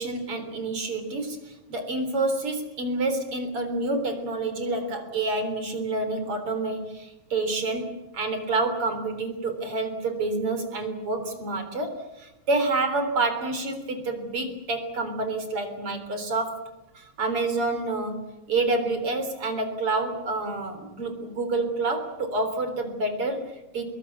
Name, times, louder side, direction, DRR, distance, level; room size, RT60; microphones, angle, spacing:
voice 1, 0.0-16.6 16.9-18.2 18.5-23.8, right 3 dB, 50° right, 7 dB, 4.5 m, -28 dB
26.0 x 21.5 x 8.5 m, 0.96 s
omnidirectional pair, 3.4 m